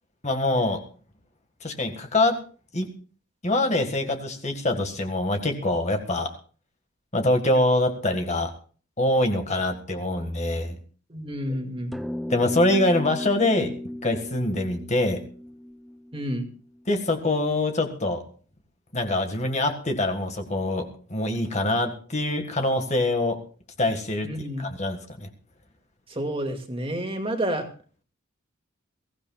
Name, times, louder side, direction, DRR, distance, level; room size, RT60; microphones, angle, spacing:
voice 1, 0.2-0.8 1.6-2.4 2.7-2.9 3.4-6.3 7.1-8.5 9.0-10.8 12.3-13.7 14.0-15.2 16.9-18.2 18.9-23.4 23.8-24.3 24.6-25.3, left 2 dB, 35° left, 5 dB, 1.8 m, -24 dB
voice 2, 11.1-11.9 16.1-16.5 24.2-24.7 26.1-27.7, equal, 25° right, 3 dB, 2.2 m, -29 dB
sound 1, 11.9-16.6, left 1 dB, ahead, 0.6 m, -35 dB
22.5 x 16.0 x 2.4 m, 0.40 s
head